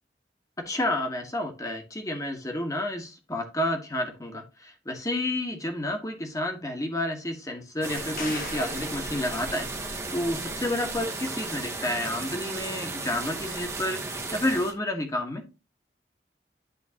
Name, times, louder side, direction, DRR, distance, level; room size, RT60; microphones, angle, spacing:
voice 1, 0.7-15.4, left 1 dB, 20° left, 1.3 m, -30 dB
sound 1, 7.8-14.7, right 3 dB, 15° right, 1.0 m, -35 dB
sound 2, 8.0-10.0 13.6-13.7, left 4 dB, 50° left, 1.1 m, -41 dB
10.5 x 3.8 x 2.8 m
head